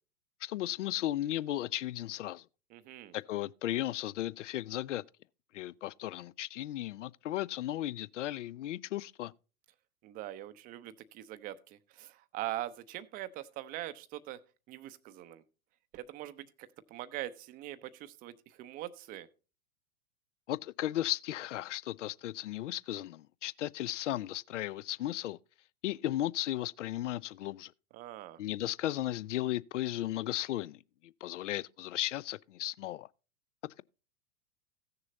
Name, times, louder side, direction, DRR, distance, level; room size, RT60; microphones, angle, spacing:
voice 1, 0.4-2.4 3.1-5.0 5.5-9.3 20.5-25.4 25.8-27.7 28.4-33.1, left 14 dB, 55° left, 0.5 m, -35 dB
voice 2, 2.7-3.2 10.0-14.4 14.7-15.4 15.9-19.3 27.9-28.4, right 14 dB, 20° right, 0.6 m, -42 dB
15.5 x 6.7 x 4.0 m
figure-of-eight pair, 100°, 45 cm